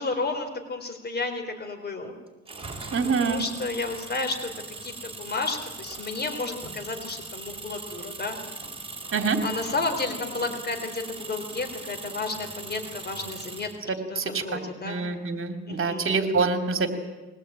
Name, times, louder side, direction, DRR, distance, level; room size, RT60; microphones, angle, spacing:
voice 1, 0.0-2.1 3.2-4.5 4.8-8.4 9.4-15.0 15.7-16.1, left 3 dB, 35° left, 5 dB, 3.9 m, -32 dB
sound 1, 2.5-13.8, right 3 dB, 20° right, 4.6 m, -40 dB
voice 2, 2.9-3.4 9.1-9.4 14.2-16.9, right 4 dB, 45° right, 7 dB, 2.7 m, -26 dB
22.0 x 18.5 x 8.9 m, 1.2 s
cardioid pair, 90°, 30 cm